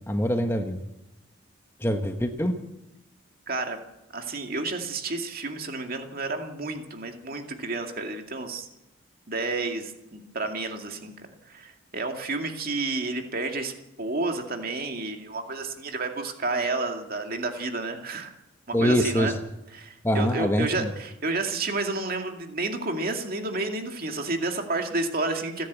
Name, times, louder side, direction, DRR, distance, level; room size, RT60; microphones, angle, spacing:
voice 1, 0.1-0.8 1.8-2.6 18.7-19.3 20.0-20.9, equal, 10° left, 5 dB, 1.2 m, -24 dB
voice 2, 3.5-3.8 4.1-8.7 9.3-11.1 11.5-13.7 14.0-18.3 18.7-19.3 19.7-25.7, right 3 dB, 45° right, 4 dB, 2.3 m, -30 dB
29.5 x 10.5 x 8.3 m, 0.92 s
head